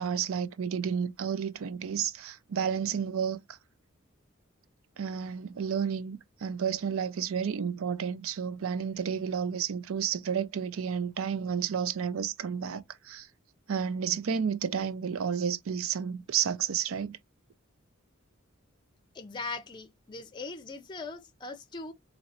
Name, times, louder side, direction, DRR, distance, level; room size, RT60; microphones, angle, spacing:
voice 1, 0.0-3.4 5.0-13.3 13.7-17.2, right 7 dB, 80° right, 0.5 m, -31 dB
voice 2, 19.1-21.9, left 3 dB, 20° left, 0.5 m, -40 dB
4.1 x 2.8 x 2.8 m
head